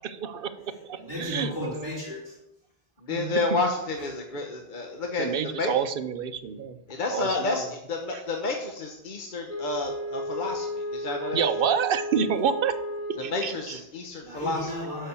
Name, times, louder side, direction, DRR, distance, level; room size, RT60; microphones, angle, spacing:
voice 1, 0.0-1.7 3.1-3.6 5.2-6.8 7.1-7.6 8.1-8.2 11.3-12.7 13.1-13.8, right 7 dB, 55° right, 10 dB, 0.8 m, -28 dB
voice 2, 1.0-2.4 3.8-4.1 14.2-15.1, left 1 dB, 15° right, -8 dB, 2.5 m, -35 dB
voice 3, 3.0-5.3 5.5-5.7 6.9-11.4 13.2-14.7, left 3 dB, 50° left, 2 dB, 1.0 m, -30 dB
Wind instrument woodwind instrument, 9.5-13.7, equal, 30° left, 2.3 m, -34 dB
6.9 x 5.8 x 7.0 m, 0.86 s
omnidirectional pair, 1.2 m